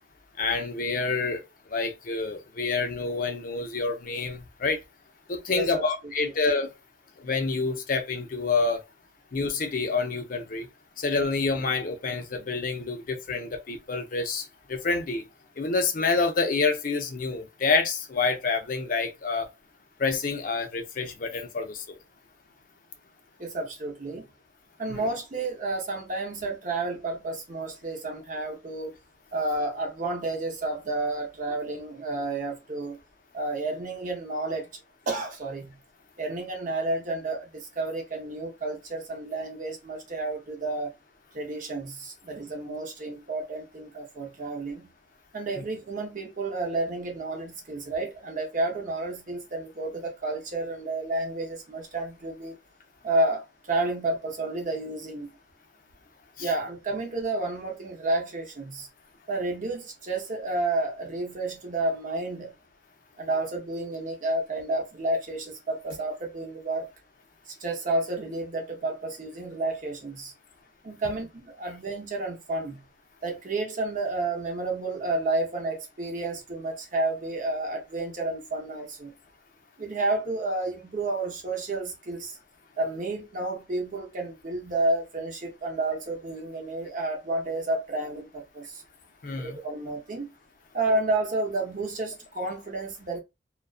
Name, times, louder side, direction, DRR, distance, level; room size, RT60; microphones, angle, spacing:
voice 1, 0.4-4.8 5.3-6.7 7.2-8.8 9.3-10.7 11.0-15.2 15.6-19.5 20.0-22.0 24.9-25.1 45.6-45.7 56.4-56.5 89.2-89.6, left 4 dB, 50° left, 0.5 m, -28 dB
voice 2, 5.5-5.8 23.4-24.3 24.8-28.9 29.3-33.0 33.3-34.7 35.1-35.8 36.2-40.9 41.3-44.9 45.3-52.6 53.0-55.3 56.4-58.9 59.3-62.5 63.2-66.9 67.5-70.3 70.8-72.8 73.2-79.1 79.8-82.4 82.8-88.8 89.4-90.3 90.7-93.2, right 2 dB, 45° right, 0.7 m, -31 dB
2.4 x 2.2 x 2.3 m
head